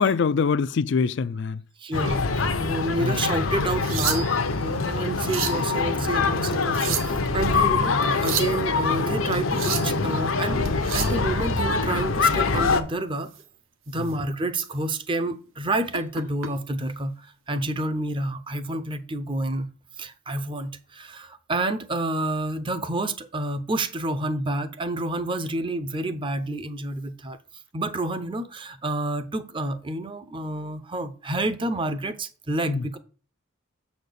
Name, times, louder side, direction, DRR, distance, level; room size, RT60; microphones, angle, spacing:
voice 1, 0.0-1.6 3.0-3.2 14.0-14.1 32.7-32.8, left 5 dB, 60° left, 0.4 m, -24 dB
voice 2, 1.8-2.3 2.6-4.3 4.6-10.7 10.9-13.3 13.9-17.1 17.5-19.7 20.0-27.4 27.7-33.0, right 2 dB, 25° right, 0.6 m, -29 dB
sound 1, 1.9-12.8, left 4 dB, 85° left, 0.9 m, -24 dB
sound 2, 3.6-4.5 5.0-5.6 6.5-7.3 8.0-8.6 9.3-10.0 10.7-11.2 13.2-13.4 13.9-14.1 14.6-14.7 15.9-16.5 17.6-17.8, right 8 dB, 80° right, 1.1 m, -31 dB
7.1 x 4.2 x 6.7 m
head